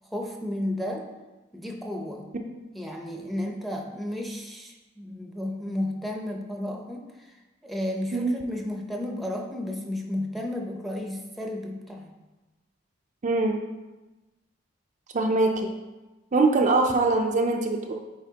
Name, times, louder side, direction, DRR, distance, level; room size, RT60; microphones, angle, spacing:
voice 1, 0.1-1.1 1.5-2.3 2.7-7.4 7.6-12.1, left 1 dB, ahead, 1 dB, 0.7 m, -33 dB
voice 2, 13.2-13.6 15.1-15.7 16.3-17.9, right 3 dB, 40° right, 2 dB, 0.5 m, -23 dB
8.3 x 4.4 x 2.8 m, 1.1 s
head